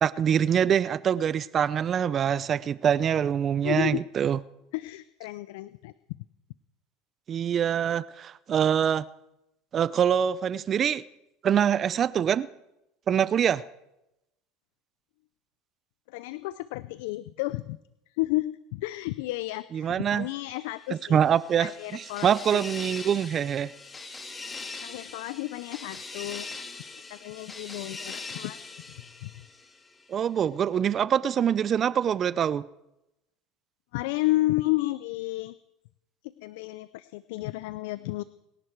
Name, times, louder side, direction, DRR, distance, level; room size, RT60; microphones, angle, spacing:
voice 1, 0.0-4.4 7.3-9.0 9.7-11.0 11.4-12.5 13.1-13.6 19.7-20.3 21.1-23.7 30.1-32.7, right 8 dB, 40° right, 0.5 m, -24 dB
voice 2, 3.6-4.0 4.7-5.9 16.1-17.8 18.1-21.2 21.6-22.6 24.8-26.5 27.0-28.7 29.2-29.3 33.9-35.5 36.2-38.2, left 18 dB, 80° left, 0.5 m, -32 dB
sound 1, 20.9-30.0, left 3 dB, 20° left, 2.1 m, -41 dB
28.5 x 11.0 x 4.6 m
supercardioid pair, 105°, 0 cm